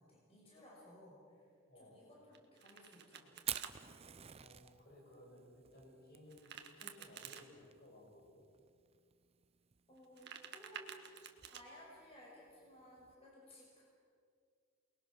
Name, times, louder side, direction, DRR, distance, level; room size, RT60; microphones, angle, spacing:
voice 1, 0.0-1.5 1.7-3.6 9.9-10.9 11.5-13.8, left 1 dB, 30° left, -4 dB, 6.0 m, -59 dB
voice 2, 1.7-2.0 4.4-8.5, left 1 dB, 50° left, -2 dB, 6.7 m, -59 dB
Domestic sounds home sounds, 2.3-3.7 6.3-7.4 10.0-11.6, right 8 dB, 55° right, 1.6 m, -51 dB
Fire, 3.4-13.1, right 10 dB, 30° right, 0.6 m, -50 dB
28.5 x 21.0 x 6.2 m, 2.2 s
head